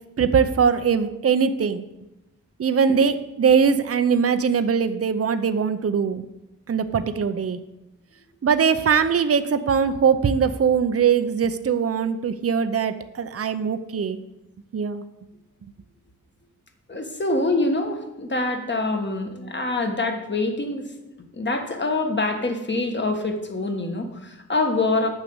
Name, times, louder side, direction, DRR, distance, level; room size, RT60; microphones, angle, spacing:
voice 1, 0.2-1.8 2.6-6.2 6.7-7.6 8.4-14.2 14.7-15.0, right 6 dB, 40° right, 11 dB, 0.6 m, -21 dB
voice 2, 16.9-20.8 21.3-25.1, left 2 dB, 30° left, 5 dB, 1.4 m, -25 dB
9.4 x 6.4 x 7.9 m, 0.97 s
wide cardioid pair, 120°, 35 cm